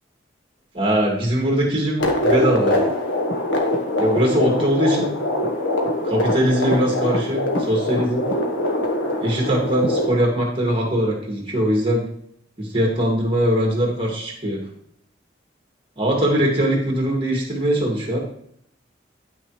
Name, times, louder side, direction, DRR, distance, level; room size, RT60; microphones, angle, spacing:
voice 1, 0.7-2.7 4.0-5.1 6.0-8.2 9.2-12.0 12.6-14.6 16.0-18.2, equal, 30° right, -1 dB, 2.1 m, -21 dB
sound 1, 2.0-10.1, left 1 dB, 90° left, 1.4 m, -23 dB
9.6 x 6.0 x 3.2 m, 0.69 s
head